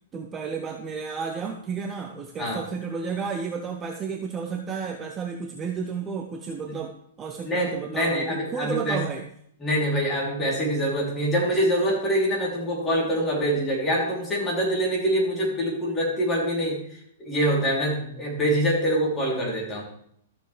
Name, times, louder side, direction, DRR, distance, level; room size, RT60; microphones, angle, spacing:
voice 1, 0.1-6.9 7.2-9.3, right 5 dB, 20° right, 4 dB, 0.7 m, -32 dB
voice 2, 7.4-9.0 9.6-19.8, equal, 15° left, -4 dB, 3.1 m, -25 dB
13.0 x 7.0 x 3.3 m, 0.68 s
hypercardioid pair, 150°, 0 cm